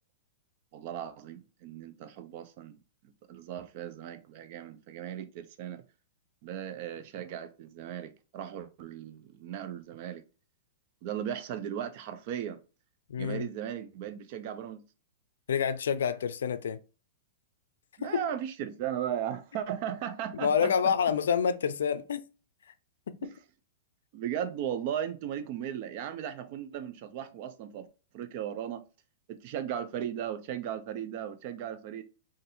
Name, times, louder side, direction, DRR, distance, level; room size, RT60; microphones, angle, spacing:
voice 1, 0.7-2.8 3.3-5.8 6.4-10.2 11.0-12.6 13.2-14.8 18.0-20.9 23.2-23.3 24.1-27.9 28.1-28.8 29.3-32.0, right 10 dB, 45° right, 0.5 m, -37 dB
voice 2, 13.1-13.5 15.5-16.8 18.0-18.2 20.4-22.2 23.1-23.3, left 7 dB, 90° left, 0.4 m, -28 dB
4.0 x 2.6 x 2.6 m
hypercardioid pair, 150°, 0 cm